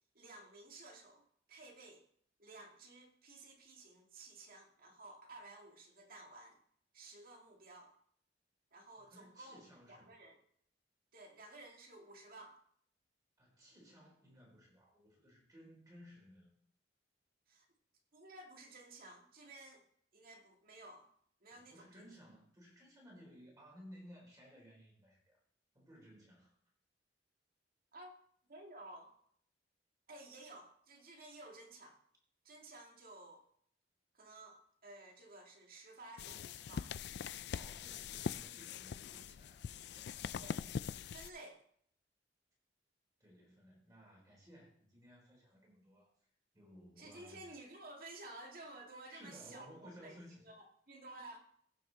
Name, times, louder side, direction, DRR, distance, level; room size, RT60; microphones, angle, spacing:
voice 1, 0.1-1.2 1.5-2.0 2.4-6.6 6.9-7.9 8.7-10.4 11.1-12.6 17.5-17.7 18.1-19.8 20.1-21.1 21.4-22.0 27.9-28.1 28.5-29.1 30.1-32.0 32.4-33.4 34.1-36.9 40.3-40.7 41.1-41.6 47.0-51.4, right 2 dB, 55° right, 1 dB, 2.2 m, -54 dB
voice 2, 8.9-10.2 13.4-16.5 21.5-25.4 25.7-26.6 37.5-40.2 43.2-46.1 46.5-47.5 49.1-50.4, equal, 20° right, -3 dB, 3.8 m, -58 dB
sound 1, 36.2-41.3, left 7 dB, 65° left, 0.3 m, -43 dB
15.5 x 6.6 x 4.0 m, 0.63 s
head